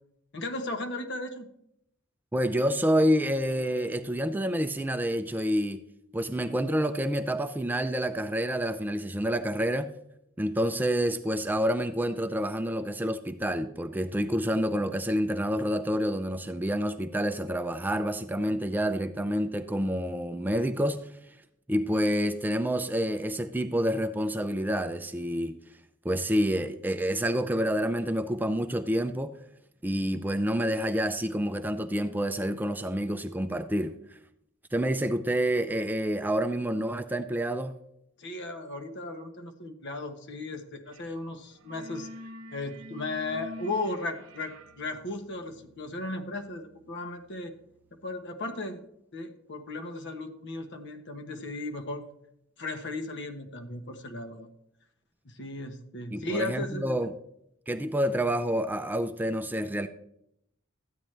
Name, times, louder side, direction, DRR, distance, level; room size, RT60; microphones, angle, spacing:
voice 1, 0.3-1.5 38.2-42.1 42.5-47.5 48.0-48.8 49.1-52.1 52.6-54.5 55.2-57.1, left 2 dB, 60° left, 1.1 m, -36 dB
voice 2, 2.3-5.8 6.1-9.9 10.4-21.1 21.7-25.5 26.0-29.4 29.8-33.9 34.7-37.7 56.1-57.1 57.7-59.9, equal, 10° right, 0.4 m, -28 dB
sound 1, 40.9-41.2 41.4-48.1, equal, 70° right, 0.7 m, -48 dB
13.0 x 9.0 x 3.2 m
head